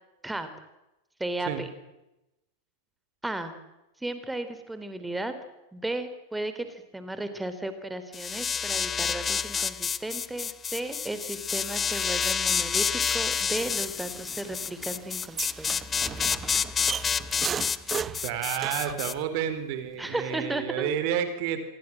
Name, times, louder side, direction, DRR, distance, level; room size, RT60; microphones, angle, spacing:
voice 1, 1.2-1.7 3.2-3.5 4.0-5.3 5.7-15.7 20.0-20.9, right 1 dB, 5° right, 10 dB, 3.7 m, -34 dB
sound 1, 8.1-19.1, left 6 dB, 20° left, 1.1 m, -29 dB
sound 2, 12.5-19.1, right 7 dB, 20° right, 0.8 m, -38 dB
voice 2, 18.2-21.6, right 9 dB, 45° right, 10 dB, 4.3 m, -30 dB
27.0 x 23.0 x 7.7 m, 0.95 s
figure-of-eight pair, 90°, 0 cm